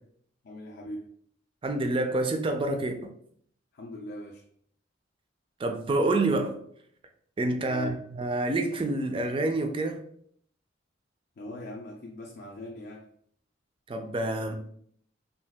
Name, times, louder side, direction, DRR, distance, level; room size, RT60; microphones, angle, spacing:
voice 1, 0.4-1.1 3.7-4.4 7.6-8.0 11.4-13.1 14.4-14.5, left 1 dB, 55° left, 0.4 m, -41 dB
voice 2, 1.6-3.1 5.6-6.6 7.4-10.0 13.9-14.5, right 2 dB, 25° right, 0.3 m, -27 dB
2.8 x 2.3 x 3.3 m
head